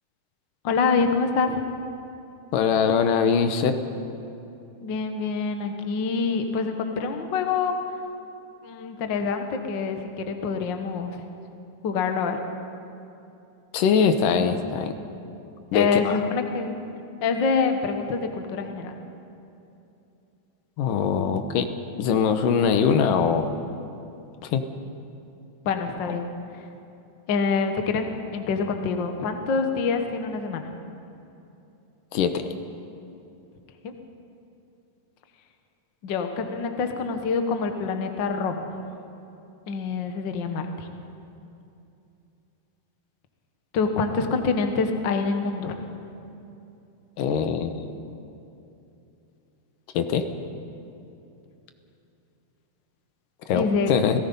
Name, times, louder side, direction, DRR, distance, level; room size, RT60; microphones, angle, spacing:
voice 1, 0.6-1.6 4.8-7.7 8.6-11.2 11.8-12.4 15.7-16.7 17.2-18.9 25.6-26.6 27.3-30.7 33.8-33.9 36.0-38.7 39.7-40.9 43.7-45.8 53.5-53.9, left 4 dB, 60° left, 6 dB, 1.2 m, -26 dB
voice 2, 2.5-3.7 13.7-14.9 15.7-16.2 20.8-21.6 22.0-23.6 24.4-24.6 32.1-32.5 47.2-47.8 49.9-50.2 53.5-54.1, left 6 dB, 75° left, 8 dB, 2.6 m, -22 dB
29.0 x 17.5 x 5.5 m, 2.8 s
omnidirectional pair, 3.9 m